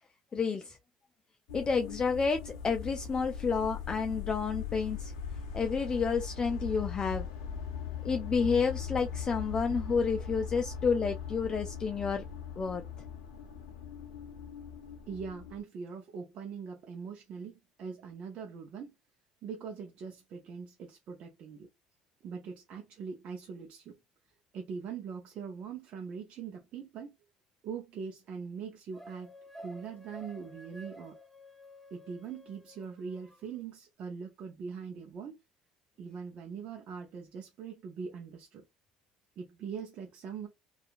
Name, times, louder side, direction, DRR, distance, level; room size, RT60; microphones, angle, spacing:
voice 1, 0.3-0.8 1.5-5.1 5.5-7.3 8.0-12.2 12.6-12.8, left 5 dB, 30° left, 0.4 m, -30 dB
sound 1, 1.5-15.6, left 7 dB, 90° left, 0.6 m, -40 dB
voice 2, 15.1-18.9 19.4-21.7 22.2-23.9 24.5-27.1 27.6-29.3 29.6-31.2 31.9-35.4 36.0-38.6 39.4-40.5, right 6 dB, 55° right, 0.6 m, -42 dB
sound 2, 28.9-33.4, equal, 5° left, 0.8 m, -51 dB
2.8 x 2.4 x 2.4 m
supercardioid pair, 85°, 3 cm